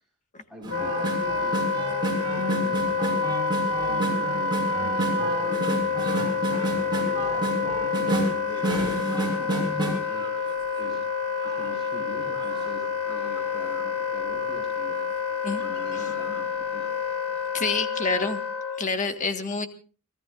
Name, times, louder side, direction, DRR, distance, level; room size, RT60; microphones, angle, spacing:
voice 1, 0.5-6.3 7.0-11.0 11.4-17.1, equal, ahead, -5 dB, 5.0 m, -44 dB
sound 1, 0.6-11.0 11.4-13.8 14.4-14.5 14.8-15.0 15.6-16.5 16.9-17.0, right 1 dB, 20° right, 6.4 m, -31 dB
Wind instrument woodwind instrument, 0.7-18.9, left 5 dB, 80° left, 1.7 m, -28 dB
voice 2, 17.5-18.4 18.8-19.7, left 4 dB, 35° left, 6 dB, 1.7 m, -27 dB
30.0 x 18.0 x 2.6 m, 0.38 s
head